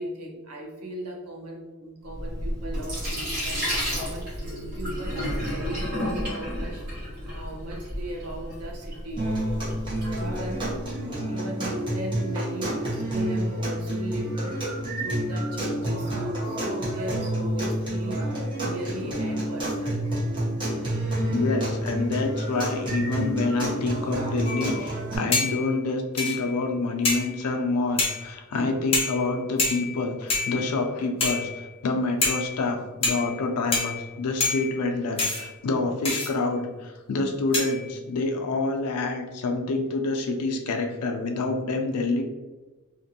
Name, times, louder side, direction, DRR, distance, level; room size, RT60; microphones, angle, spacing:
voice 1, 0.0-9.8 10.2-20.1, equal, 90° right, 0 dB, 0.7 m, -37 dB
Sink (filling or washing), 2.1-10.9, equal, 50° right, 1.4 m, -32 dB
sound 1, 9.2-25.2, right 1 dB, 20° right, 0.9 m, -29 dB
voice 2, 21.3-42.2, left 3 dB, 90° left, 4 dB, 0.4 m, -27 dB
sound 2, 24.5-24.8 25.3-25.7 26.2-26.6 27.0-27.4 28.0-28.3 28.9-29.3 29.6-30.0 30.3-30.8 31.2-31.7 32.2-32.6 33.0-33.4 33.7-34.1 34.4-34.8 35.2-35.5 36.0-36.3 37.5-37.9, left 3 dB, 25° left, 0.6 m, -27 dB
2.6 x 2.5 x 2.7 m, 1.2 s
head